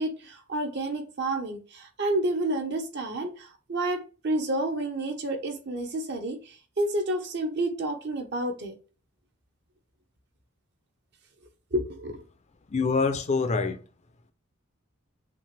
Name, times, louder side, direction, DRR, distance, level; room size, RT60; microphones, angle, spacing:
voice 1, 0.0-8.7 11.7-12.2, right 1 dB, 55° right, 1.0 m, -30 dB
voice 2, 12.7-13.8, left 4 dB, 35° left, 0.5 m, -25 dB
5.7 x 2.5 x 3.3 m
head